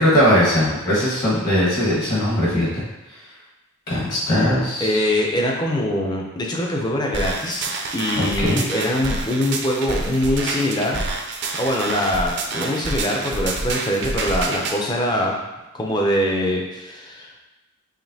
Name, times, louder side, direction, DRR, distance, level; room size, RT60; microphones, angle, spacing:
voice 1, 0.0-2.8 3.9-5.0 8.2-8.6, equal, 45° left, -6 dB, 1.2 m, -19 dB
voice 2, 4.8-7.6 7.9-11.2 11.5-15.3 15.7-17.3, left 1 dB, 20° left, -1 dB, 0.5 m, -23 dB
sound 1, 7.1-14.8, right 3 dB, 50° right, 0.4 m, -28 dB
5.0 x 3.0 x 2.7 m, 1.1 s
head